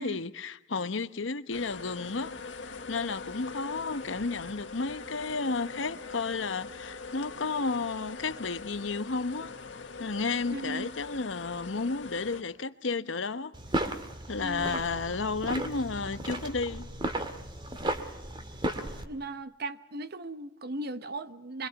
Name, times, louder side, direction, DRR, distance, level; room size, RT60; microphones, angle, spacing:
voice 1, 0.0-2.3 2.9-9.5 10.0-13.5 14.3-16.9, left 4 dB, 85° left, 1.0 m, -32 dB
sound 1, 1.5-12.4, left 4 dB, 70° left, 1.7 m, -43 dB
voice 2, 10.5-10.9 14.4-14.8 19.0-21.7, right 2 dB, 55° right, 1.1 m, -37 dB
sound 2, 13.5-19.0, right 1 dB, 25° right, 1.8 m, -35 dB
25.5 x 23.5 x 5.9 m
head